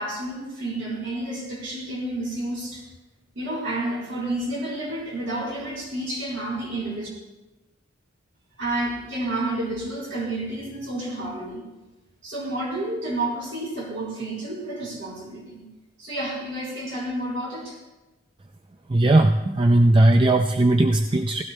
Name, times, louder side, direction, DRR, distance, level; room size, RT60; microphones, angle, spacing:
voice 1, 0.0-2.8 3.4-7.1 8.6-11.6 12.2-15.6 16.0-17.8, right 1 dB, 65° right, -4 dB, 3.8 m, -30 dB
voice 2, 18.9-21.4, right 1 dB, 25° right, 5 dB, 0.4 m, -18 dB
17.5 x 15.5 x 2.3 m, 1.1 s
head